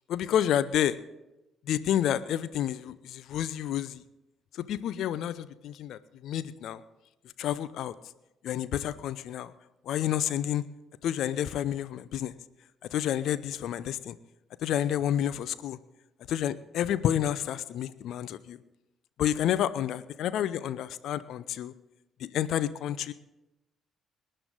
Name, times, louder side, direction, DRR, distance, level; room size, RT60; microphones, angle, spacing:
voice 1, 0.1-0.9 1.7-4.0 4.5-6.8 7.4-7.9 8.4-9.5 9.9-10.6 11.0-12.3 12.9-14.2 14.6-15.8 16.3-18.6 19.2-21.7 22.2-23.1, left 10 dB, 55° left, 15 dB, 0.6 m, -29 dB
25.0 x 10.0 x 3.8 m, 0.97 s
figure-of-eight pair, 45°, 0 cm